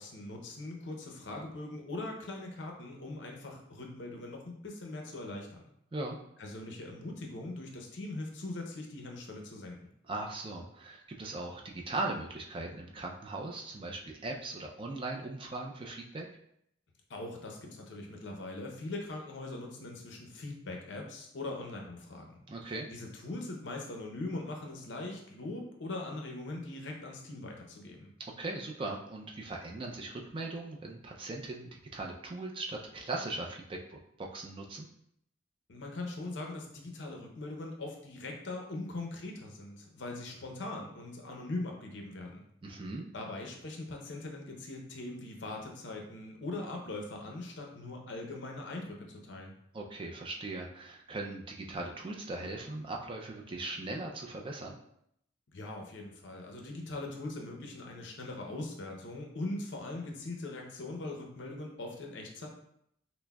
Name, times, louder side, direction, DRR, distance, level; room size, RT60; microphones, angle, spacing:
voice 1, 0.0-5.6 6.4-9.8 17.1-28.1 35.7-42.4 43.1-49.5 55.5-62.5, left 2 dB, 65° left, 1 dB, 0.7 m, -41 dB
voice 2, 10.1-16.3 22.5-22.9 28.4-34.9 42.6-43.0 49.7-54.8, right 2 dB, 25° right, 1 dB, 0.4 m, -39 dB
5.9 x 2.0 x 2.2 m, 0.73 s
head